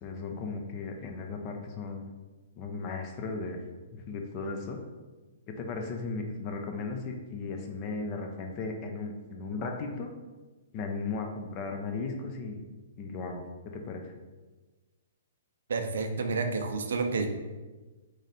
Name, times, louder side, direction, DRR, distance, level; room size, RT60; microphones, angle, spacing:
voice 1, 0.0-2.0 2.6-3.6 4.1-4.8 5.5-10.1 10.7-12.6 13.0-14.1, left 3 dB, 35° left, 3 dB, 0.6 m, -36 dB
voice 2, 15.7-17.3, right 4 dB, 80° right, 5 dB, 0.6 m, -30 dB
4.0 x 3.1 x 4.1 m, 1.2 s
hypercardioid pair, 140°, 0 cm